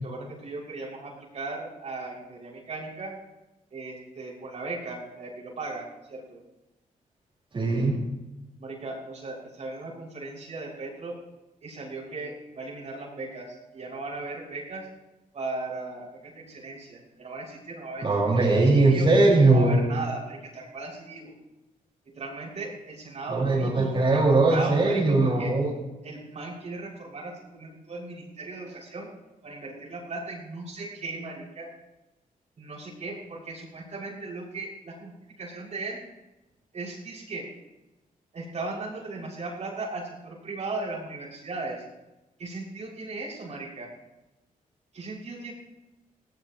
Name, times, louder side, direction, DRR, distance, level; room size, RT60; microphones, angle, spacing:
voice 1, 0.0-3.1 3.7-6.5 8.6-11.2 11.6-14.9 15.3-18.4 18.7-19.1 19.5-21.3 22.1-25.5 26.0-29.1 29.4-31.7 32.6-35.1 35.4-36.0 36.7-37.5 38.3-41.8 42.4-43.9 44.9-45.5, right 3 dB, 55° right, -4 dB, 6.3 m, -37 dB
voice 2, 7.5-8.0 18.0-19.8 23.3-25.7, right 2 dB, 40° right, -5 dB, 5.4 m, -20 dB
19.0 x 18.0 x 3.1 m, 0.99 s
cardioid pair, 110°, 14 cm